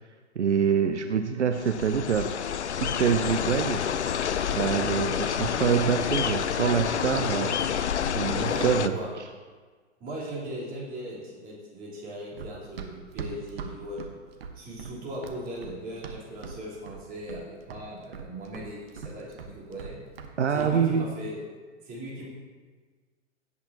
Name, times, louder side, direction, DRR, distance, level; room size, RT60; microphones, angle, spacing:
voice 1, 0.4-2.3 2.7-3.8 4.2-7.6 8.1-9.0 20.4-21.1, right 7 dB, 75° right, 7 dB, 0.7 m, -25 dB
sound 1, 1.5-8.9, left 8 dB, 70° left, 0.6 m, -28 dB
voice 2, 8.3-9.1 10.0-14.0 14.5-20.0 20.5-21.4 21.8-22.3, right 1 dB, 25° right, -7 dB, 3.7 m, -38 dB
Run, 12.4-16.6 16.9-17.5 17.7-20.3 20.6-20.8, right 6 dB, 55° right, 1.2 m, -40 dB
17.0 x 8.5 x 2.9 m, 1.5 s
figure-of-eight pair, 110°, 35 cm